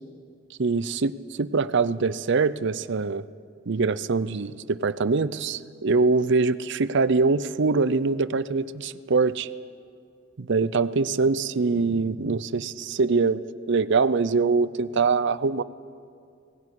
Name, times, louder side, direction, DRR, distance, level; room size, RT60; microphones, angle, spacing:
voice 1, 0.6-3.2 3.7-9.5 10.4-15.6, right 4 dB, 60° right, 15 dB, 0.6 m, -23 dB
18.0 x 16.5 x 9.7 m, 2.3 s
head